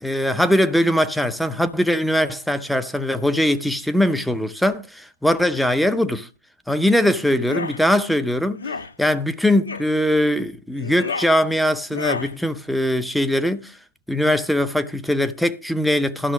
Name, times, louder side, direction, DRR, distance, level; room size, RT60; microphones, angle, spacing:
voice 1, 0.0-6.3 6.7-8.6 9.0-13.8 14.1-16.3, left 1 dB, ahead, 0.6 m, -21 dB
sound 1, 7.4-7.8 8.6-8.9 9.7-9.9 10.7-11.3 11.9-12.3, left 4 dB, 80° left, 1.8 m, -30 dB
12.5 x 5.9 x 5.8 m
hypercardioid pair, 130°, 0 cm